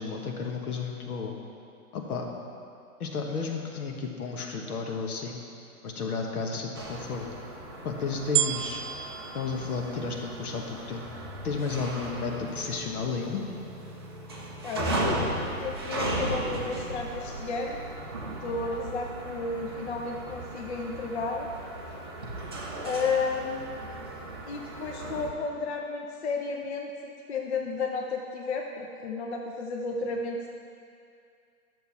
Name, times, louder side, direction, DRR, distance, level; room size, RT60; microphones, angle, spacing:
voice 1, 0.0-1.4 1.9-2.3 3.0-5.4 5.8-7.2 7.8-8.8 9.3-11.0 11.4-13.4, left 4 dB, 75° left, 1 dB, 1.6 m, -32 dB
sound 1, 6.7-25.3, right 1 dB, 20° right, 0.4 m, -36 dB
sound 2, 8.4-10.7 11.4-11.5, right 11 dB, 90° right, 0.6 m, -31 dB
voice 2, 14.6-15.2 15.6-17.8 18.4-21.5 22.8-23.8 24.5-30.5, left 4 dB, 50° left, 1 dB, 0.8 m, -32 dB
11.0 x 6.9 x 4.2 m, 2.4 s
hypercardioid pair, 160°, 44 cm